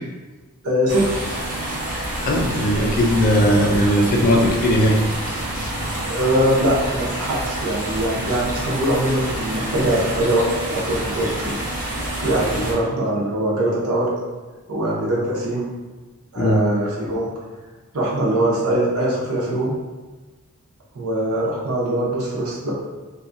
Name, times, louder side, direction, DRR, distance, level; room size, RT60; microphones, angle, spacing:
voice 1, 0.6-1.2 6.0-11.6 12.2-14.1 14.7-15.6 16.3-17.3 17.9-19.7 20.9-22.7, right 1 dB, 70° right, -4 dB, 0.7 m, -22 dB
sound 1, 0.9-12.7, right 1 dB, 40° right, 0.7 m, -27 dB
voice 2, 2.2-5.0 5.6-5.7 12.6-12.7 16.4-16.6, equal, 40° left, 1 dB, 0.3 m, -18 dB
2.6 x 2.3 x 2.5 m, 1.2 s
head